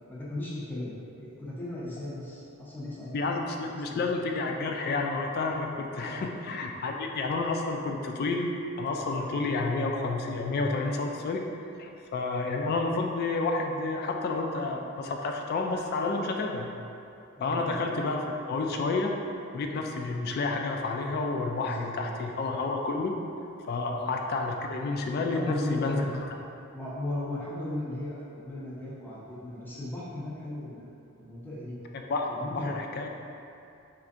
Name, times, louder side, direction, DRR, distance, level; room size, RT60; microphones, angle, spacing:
voice 1, 0.1-0.9 1.2-3.3 3.7-4.1 5.9-6.2 17.3-17.8 21.6-22.2 23.9-24.1 25.3-26.1 26.7-30.9 31.2-31.7 32.3-32.7, left 1 dB, 10° left, -8 dB, 0.6 m, -36 dB
voice 2, 3.1-11.5 11.8-16.7 17.4-19.1 19.5-23.1 23.7-26.1 32.1-33.1, left 3 dB, 50° left, 2 dB, 0.3 m, -30 dB
4.3 x 2.6 x 2.5 m, 2.7 s
head